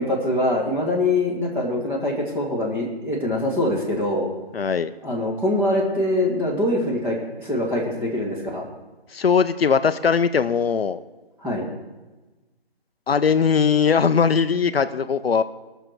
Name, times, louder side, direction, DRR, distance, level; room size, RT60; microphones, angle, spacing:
voice 1, 0.0-4.3 5.0-8.6 11.4-11.7, left 1 dB, 5° right, -4 dB, 1.5 m, -23 dB
voice 2, 4.5-4.9 9.1-11.0 13.1-15.4, left 6 dB, 70° left, 11 dB, 0.7 m, -20 dB
20.0 x 6.7 x 4.6 m, 1.2 s
figure-of-eight pair, 155°, 31 cm